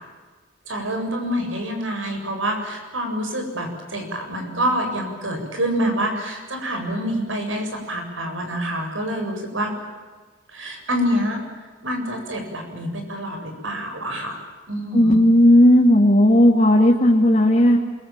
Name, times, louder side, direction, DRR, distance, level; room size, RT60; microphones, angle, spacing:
voice 1, 0.7-9.7 10.5-11.4 11.8-14.4 14.7-15.2, equal, 80° right, 4 dB, 7.6 m, -26 dB
voice 2, 14.9-17.8, left 1 dB, 35° left, -1 dB, 2.4 m, -14 dB
28.0 x 22.5 x 9.0 m, 1.4 s
head